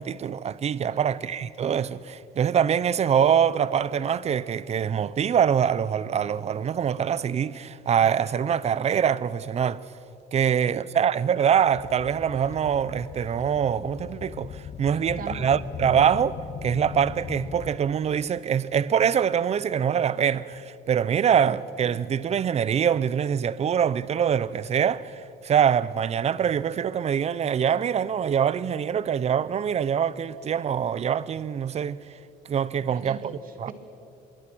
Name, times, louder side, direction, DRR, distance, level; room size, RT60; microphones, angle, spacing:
voice 1, 0.0-9.8 10.3-32.0 32.5-33.2 33.6-33.7, right 8 dB, 40° right, 0.7 m, -24 dB
voice 2, 0.8-1.2 10.3-11.0 14.9-15.5 32.8-33.7, right 6 dB, 55° right, 2.8 m, -42 dB
sound 1, 11.7-17.9 18.5-18.7 19.6-19.7 20.5-20.6, left 8 dB, 45° left, 1.0 m, -39 dB
25.0 x 22.0 x 6.2 m
cardioid pair, 110°, 17 cm